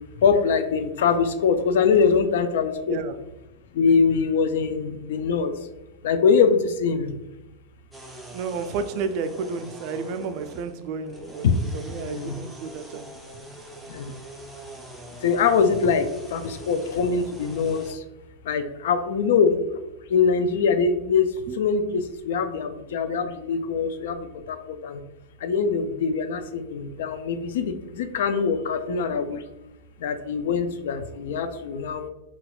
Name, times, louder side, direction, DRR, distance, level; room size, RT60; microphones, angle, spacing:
voice 1, 0.2-3.0 3.7-5.5 6.0-7.1 11.4-11.5 12.1-12.3 13.9-14.1 15.2-18.0 18.5-19.6 20.1-21.3 21.6-25.0 25.4-29.4 30.0-32.0, left 5 dB, 70° left, 9 dB, 0.3 m, -23 dB
sound 1, 7.9-17.9, right 1 dB, 5° right, 0.5 m, -43 dB
voice 2, 8.3-11.5 11.7-13.1 21.5-21.6, right 5 dB, 55° right, 9 dB, 0.3 m, -31 dB
4.0 x 2.3 x 2.3 m, 0.96 s
hypercardioid pair, 100°, 0 cm